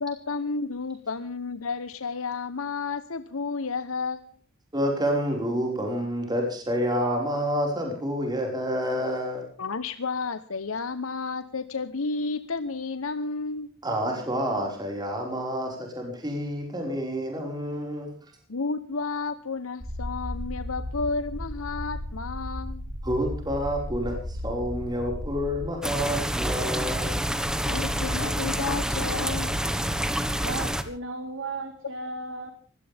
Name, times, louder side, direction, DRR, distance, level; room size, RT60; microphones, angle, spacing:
voice 1, 0.0-4.4 9.6-13.7 18.5-22.9 27.6-29.6, left 4 dB, 85° left, 12 dB, 1.0 m, -31 dB
voice 2, 4.7-9.5 13.8-18.1 23.0-27.3, equal, 20° right, 1 dB, 5.2 m, -28 dB
sound 1, 19.8-25.7, left 1 dB, 35° right, 3.1 m, -35 dB
sound 2, 25.8-30.8, equal, 5° right, 1.4 m, -27 dB
voice 3, 30.4-32.5, right 2 dB, 65° right, 7 dB, 2.2 m, -35 dB
23.5 x 17.0 x 3.5 m, 0.42 s
head